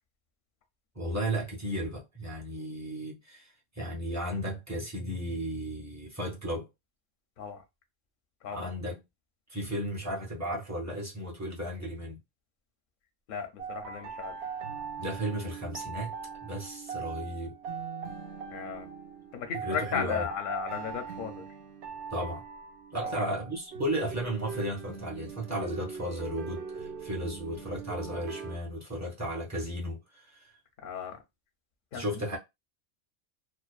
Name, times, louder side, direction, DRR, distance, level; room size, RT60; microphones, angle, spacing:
voice 1, 1.0-6.7 8.5-9.0 9.5-12.2 15.0-16.1 16.4-17.6 19.6-20.3 22.1-22.5 22.9-30.5 31.9-32.4, equal, 25° right, 0.4 m, -34 dB
voice 2, 13.3-14.3 18.5-18.9 19.3-21.5 23.0-23.2 30.8-31.2 31.9-32.0, left 7 dB, 55° left, 0.6 m, -35 dB
sound 1, 13.6-28.6, right 6 dB, 70° right, 0.8 m, -40 dB
2.5 x 2.1 x 2.3 m
omnidirectional pair, 1.3 m